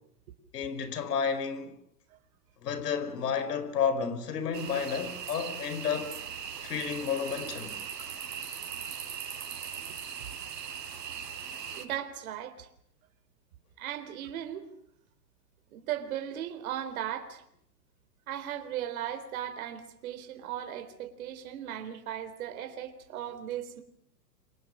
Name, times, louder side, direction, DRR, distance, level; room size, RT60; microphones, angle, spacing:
voice 1, 0.5-1.7 2.6-6.2 6.6-7.8, left 6 dB, 70° left, 4.9 m, -31 dB
sound 1, 4.5-11.9, right 7 dB, 75° right, 4.6 m, -39 dB
voice 2, 11.7-12.7 13.8-14.7 15.7-17.4 18.3-23.8, right 11 dB, 55° right, 4.0 m, -37 dB
28.0 x 25.0 x 6.5 m
hypercardioid pair, 115°, 49 cm